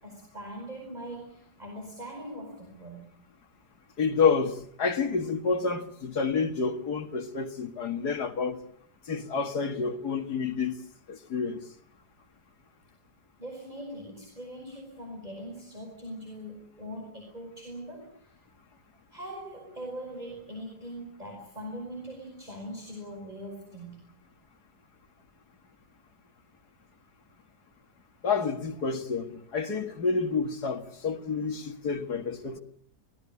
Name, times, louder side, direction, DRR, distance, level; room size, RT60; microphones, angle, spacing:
voice 1, 0.0-3.1 13.4-18.4 19.1-24.0, equal, 25° right, 5.3 m, -41 dB
voice 2, 4.0-8.6 9.1-10.7 11.1-11.6 28.2-32.6, left 5 dB, 65° left, 2.5 m, -29 dB
23.0 x 18.5 x 9.8 m
omnidirectional pair, 1.9 m